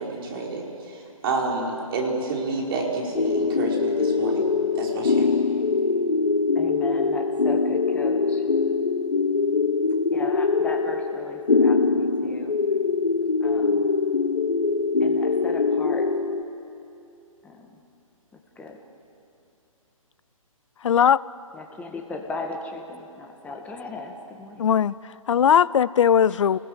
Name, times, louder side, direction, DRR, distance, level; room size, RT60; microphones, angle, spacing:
voice 1, 0.0-4.5 4.8-5.3, right 3 dB, 40° right, 5.1 m, -29 dB
sound 1, 3.1-16.4, left 4 dB, 80° left, 1.2 m, -23 dB
voice 2, 6.5-8.5 10.1-12.5 13.4-13.9 15.0-16.1 17.4-17.8 18.5-18.8 21.5-24.7, left 3 dB, 10° left, 1.8 m, -37 dB
voice 3, 20.8-21.2 24.6-26.6, left 8 dB, 60° left, 0.5 m, -19 dB
29.0 x 20.0 x 7.9 m
figure-of-eight pair, 140°, 18 cm